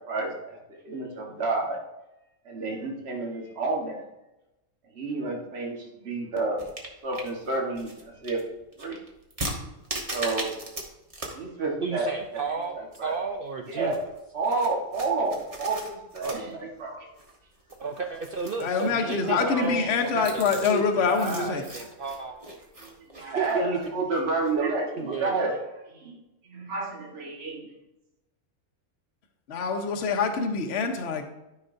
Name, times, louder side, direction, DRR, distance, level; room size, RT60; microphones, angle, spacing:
voice 1, 0.1-0.6 0.8-1.8 2.4-4.0 4.9-6.6 7.0-8.4 8.8-9.0 10.1-10.5 11.3-12.4 13.0-13.1 13.7-14.0 14.3-17.1 19.2-19.9 22.8-25.5 25.9-26.1 26.5-27.7, right 3 dB, 45° right, -2 dB, 1.6 m, -30 dB
sound 1, 6.6-10.8 11.1-11.4 11.7-11.8 12.2-13.3 13.7-24.6, right 1 dB, 25° right, 1.2 m, -39 dB
voice 2, 11.8-14.1 16.2-16.5 17.8-20.8 21.2-22.4 23.2-23.8 25.0-25.4, right 5 dB, 70° right, 4 dB, 0.5 m, -33 dB
voice 3, 18.6-21.6 29.5-31.2, left 5 dB, 50° left, 4 dB, 1.0 m, -25 dB
12.5 x 5.3 x 2.6 m, 0.95 s
omnidirectional pair, 1.6 m